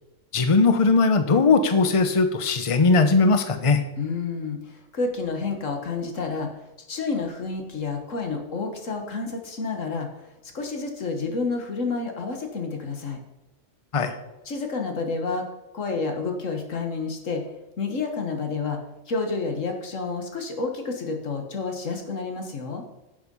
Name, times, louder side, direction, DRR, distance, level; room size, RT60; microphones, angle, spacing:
voice 1, 0.3-3.8 13.9-14.1, left 4 dB, 30° left, 9 dB, 0.9 m, -19 dB
voice 2, 4.0-6.5 6.8-13.2 14.5-15.5 15.7-17.4 17.8-18.8 19.1-22.8, left 4 dB, 90° left, 4 dB, 1.9 m, -29 dB
11.0 x 6.9 x 5.5 m, 0.98 s
omnidirectional pair, 1.3 m